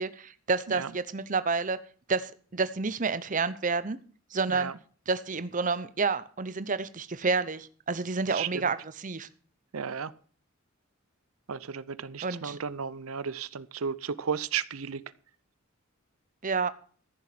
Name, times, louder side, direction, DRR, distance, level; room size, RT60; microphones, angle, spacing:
voice 1, 0.0-1.8 2.1-4.0 4.3-4.7 5.1-8.8 9.0-9.3 12.2-12.6 16.4-16.7, right 4 dB, 40° right, 0.8 m, -29 dB
voice 2, 8.3-8.7 9.7-10.1 11.5-15.0, right 6 dB, 90° right, 0.7 m, -34 dB
14.5 x 7.2 x 7.7 m
head